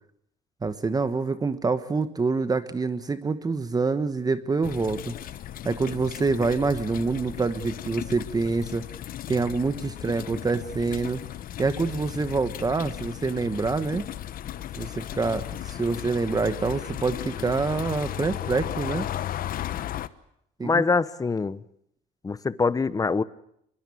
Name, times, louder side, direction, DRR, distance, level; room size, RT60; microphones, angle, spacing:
voice 1, 0.6-5.1 5.6-8.8 9.3-11.2 11.6-14.0 14.8-19.1 20.6-20.8, right 4 dB, 20° right, 11 dB, 1.3 m, -26 dB
sound 1, 4.6-20.1, left 12 dB, 60° left, 1.0 m, -35 dB
voice 2, 20.6-21.6 22.2-23.2, left 4 dB, 20° left, 17 dB, 1.0 m, -24 dB
24.0 x 22.0 x 8.5 m, 0.73 s
cardioid pair, 110°, 17 cm